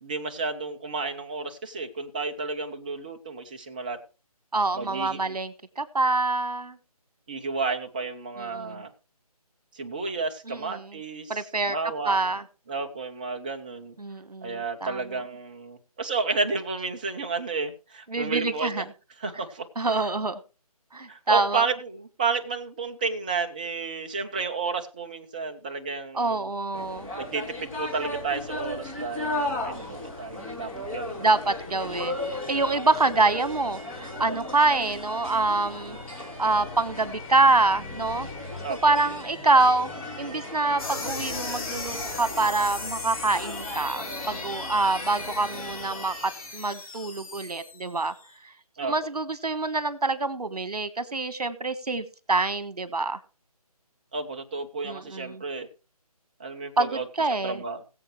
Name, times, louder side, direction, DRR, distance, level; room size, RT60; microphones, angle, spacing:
voice 1, 0.0-4.0 4.7-5.4 7.3-8.9 9.7-12.4 12.7-14.0 14.4-18.8 19.2-19.9 21.1-26.5 27.2-31.3 38.6-38.8 48.8-48.9 54.1-55.7 56.4-57.0 57.4-57.8, right 4 dB, 15° right, 6 dB, 0.5 m, -32 dB
voice 2, 4.5-6.8 8.4-8.8 10.5-10.9 11.3-11.8 12.0-12.4 14.0-15.0 18.1-18.8 19.8-20.4 20.9-21.6 26.1-27.1 31.2-38.3 38.7-39.9 40.2-48.1 48.8-53.2 54.8-55.4 56.8-57.6, right 3 dB, 75° right, 14 dB, 1.4 m, -26 dB
sound 1, 26.7-46.6, left 2 dB, 10° left, 2.5 m, -36 dB
sound 2, 40.8-48.3, left 3 dB, 65° left, 4.2 m, -37 dB
21.0 x 7.6 x 3.2 m, 0.34 s
figure-of-eight pair, 155°, 20 cm